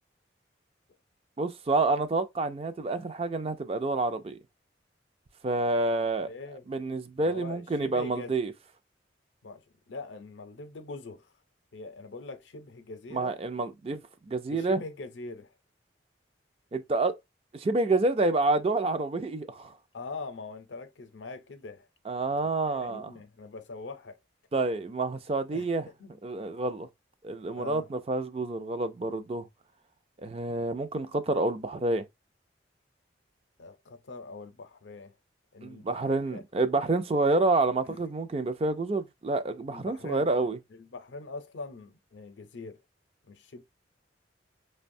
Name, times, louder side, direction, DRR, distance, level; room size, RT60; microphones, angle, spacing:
voice 1, 1.4-4.4 5.4-6.3 6.7-8.5 13.1-14.0 14.3-14.8 16.7-17.2 17.5-19.7 22.1-23.1 24.5-25.9 26.2-26.9 27.2-29.5 30.2-32.0 35.6-40.6, right 2 dB, 30° right, 0.4 m, -28 dB
voice 2, 6.2-6.7 7.1-8.3 9.4-11.3 11.7-13.4 14.5-15.5 19.9-21.9 22.4-24.2 25.5-26.1 27.5-27.9 33.6-35.1 35.5-36.4 37.8-38.0 39.6-42.8 43.2-43.6, left 3 dB, 80° left, 0.6 m, -43 dB
5.2 x 2.2 x 2.6 m
head